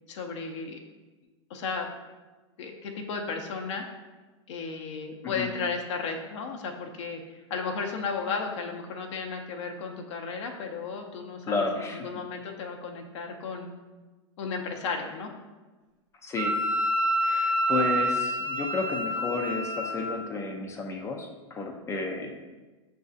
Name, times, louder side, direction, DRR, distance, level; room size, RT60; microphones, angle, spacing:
voice 1, 0.1-0.8 1.5-1.9 2.6-3.8 4.5-13.7 14.4-15.3, left 5 dB, 70° left, 2 dB, 0.6 m, -34 dB
voice 2, 11.5-12.1 16.2-16.5 17.2-22.4, left 3 dB, 20° left, 2 dB, 0.4 m, -32 dB
Wind instrument woodwind instrument, 16.4-20.1, equal, 45° right, 0.6 m, -27 dB
6.2 x 2.6 x 2.4 m, 1.2 s
hypercardioid pair, 130°, 16 cm